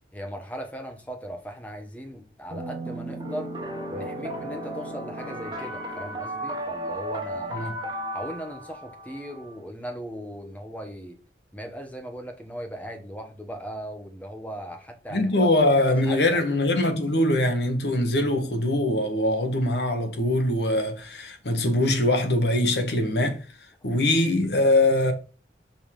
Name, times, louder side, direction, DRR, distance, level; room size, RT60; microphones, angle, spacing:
voice 1, 0.1-3.5 3.9-7.7 8.1-11.2 11.5-15.5 15.8-16.4, equal, 10° left, 1.2 m, -38 dB
sound 1, 2.5-9.5, right 1 dB, 25° right, 1.5 m, -34 dB
voice 2, 15.1-23.5 23.8-25.1, left 1 dB, 65° left, 1.3 m, -22 dB
5.4 x 3.7 x 4.9 m
head